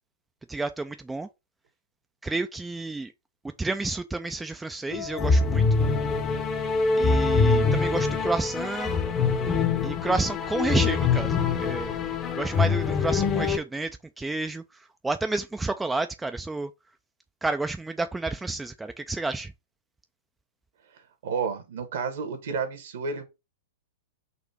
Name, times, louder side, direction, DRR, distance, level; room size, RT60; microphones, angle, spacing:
voice 1, 0.5-1.3 2.2-3.1 3.6-5.6 7.0-8.9 9.8-11.9 12.3-14.6 15.0-16.7 17.4-19.5, right 3 dB, 10° right, 0.3 m, -30 dB
sound 1, 4.9-13.6, left 4 dB, 25° left, 0.7 m, -24 dB
voice 2, 21.2-23.2, right 5 dB, 60° right, 1.2 m, -31 dB
4.1 x 2.6 x 4.4 m
figure-of-eight pair, 105°, 0 cm